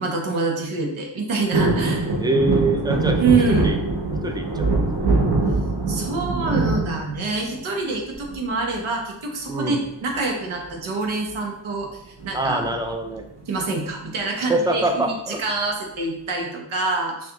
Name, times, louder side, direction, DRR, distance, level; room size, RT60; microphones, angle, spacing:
voice 1, 0.0-2.1 3.2-3.7 5.9-12.7 13.5-17.3, right 3 dB, 85° right, 1 dB, 1.0 m, -26 dB
sound 1, 1.5-7.7 8.1-8.7 10.0-10.4 10.7-10.8 11.0-11.4 12.2-13.1 13.6-13.7, right 3 dB, 55° right, 1.0 m, -23 dB
voice 2, 2.2-3.2 3.6-3.8 4.2-5.1 9.5-9.8 12.3-13.3 14.5-15.4, right 2 dB, 10° right, 4 dB, 0.4 m, -24 dB
6.1 x 2.4 x 2.9 m, 0.81 s
wide cardioid pair, 115°, 47 cm